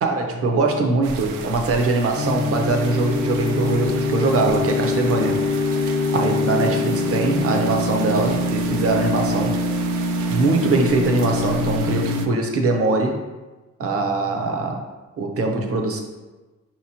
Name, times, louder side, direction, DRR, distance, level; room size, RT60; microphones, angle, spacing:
voice 1, 0.0-5.4 5.7-5.8 6.1-9.6 10.3-13.1 13.8-14.8 15.2-16.0, right 3 dB, 50° right, 3 dB, 0.8 m, -22 dB
sound 1, 1.0-12.3, right 6 dB, 75° right, 0.5 m, -36 dB
sound 2, 2.2-12.3, left 2 dB, 75° left, 0.8 m, -24 dB
5.4 x 2.9 x 2.8 m, 1.2 s
cardioid pair, 90°, 30 cm